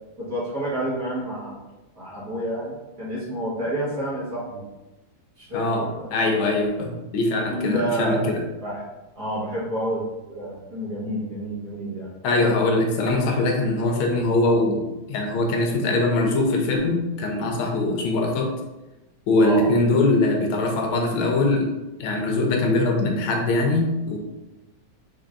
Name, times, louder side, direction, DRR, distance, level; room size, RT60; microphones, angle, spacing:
voice 1, 0.3-1.6 2.0-4.6 5.4-6.1 7.5-8.2 8.6-8.8 9.2-12.1 19.4-19.7, right 1 dB, 55° right, -9 dB, 2.0 m, -29 dB
voice 2, 5.5-8.4 12.2-14.8 15.1-18.5 19.3-21.7 22.0-24.2, left 2 dB, 80° left, 2 dB, 1.6 m, -22 dB
5.1 x 3.7 x 2.5 m, 1.0 s
omnidirectional pair, 2.2 m